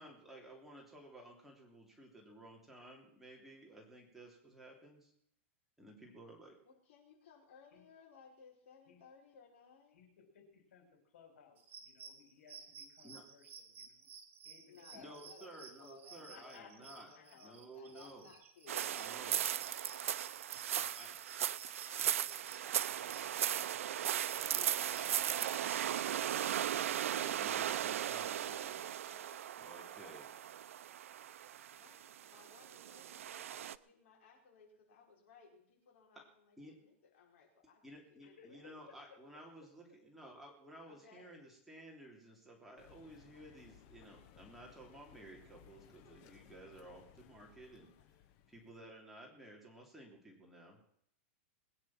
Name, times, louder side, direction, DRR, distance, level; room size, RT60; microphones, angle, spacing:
voice 1, 0.0-5.1 5.8-6.6 13.0-13.2 14.9-17.1 17.4-18.3 18.8-19.4 20.7-21.1 26.9-28.9 29.6-30.3 36.6-36.8 37.8-47.9 48.5-50.8, right 1 dB, 5° right, -2 dB, 3.2 m, -55 dB
voice 2, 6.7-10.0 14.7-20.2 20.9-21.2 21.9-23.9 24.3-28.4 28.7-30.5 31.7-37.8 38.1-38.8 40.9-41.5 48.0-48.1, left 6 dB, 65° left, 0 dB, 5.6 m, -62 dB
voice 3, 9.9-14.1 14.4-15.8 16.2-17.4 38.2-39.4, left 6 dB, 85° left, 5 dB, 4.9 m, -61 dB
sound 1, 11.6-25.9, right 6 dB, 25° right, 2.3 m, -56 dB
sound 2, 18.7-33.8, right 11 dB, 85° right, 0.6 m, -37 dB
sound 3, 42.8-48.9, left 10 dB, 40° left, 1.2 m, -62 dB
21.0 x 9.9 x 6.0 m, 0.71 s
supercardioid pair, 150°, 7 cm